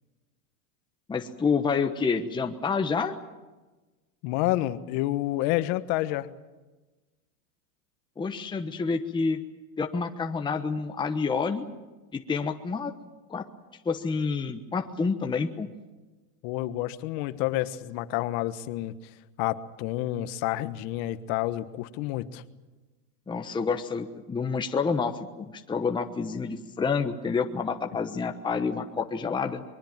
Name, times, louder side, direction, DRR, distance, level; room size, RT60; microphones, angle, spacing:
voice 1, 1.1-3.1 8.2-9.4 9.8-11.7 12.1-12.9 13.3-13.4 13.8-15.7 23.3-29.6, left 5 dB, 10° left, 5 dB, 1.1 m, -28 dB
voice 2, 4.2-6.3 16.4-18.9 19.4-22.4, left 15 dB, 50° left, 13 dB, 1.4 m, -29 dB
24.5 x 22.0 x 7.5 m, 1.2 s
supercardioid pair, 130°, 45 cm